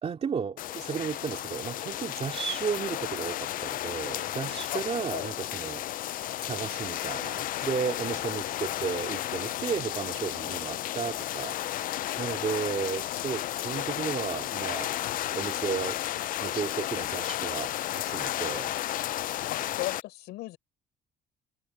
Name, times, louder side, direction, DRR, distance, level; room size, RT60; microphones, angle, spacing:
voice 1, 0.0-5.9 6.4-15.0 15.3-16.0 16.4-17.7 18.0-18.7, right 6 dB, 40° right, 3.1 m, -34 dB
sound 1, 0.6-20.0, left 13 dB, 55° left, 0.4 m, -33 dB
voice 2, 4.7-5.3 8.7-9.0 19.5-20.6, left 17 dB, 85° left, 5.4 m, -37 dB
open air
cardioid pair, 110°, 17 cm